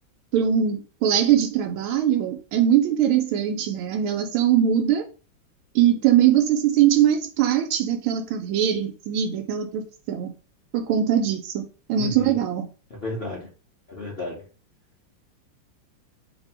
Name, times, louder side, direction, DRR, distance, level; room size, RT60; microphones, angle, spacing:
voice 1, 0.3-5.0 5.7-9.8 10.1-10.3 10.7-12.6, right 10 dB, 85° right, 3 dB, 1.4 m, -21 dB
voice 2, 12.0-12.3 12.9-13.5 13.9-14.5, left 2 dB, 60° left, -4 dB, 0.6 m, -32 dB
3.2 x 2.6 x 4.2 m, 0.37 s
omnidirectional pair, 2.3 m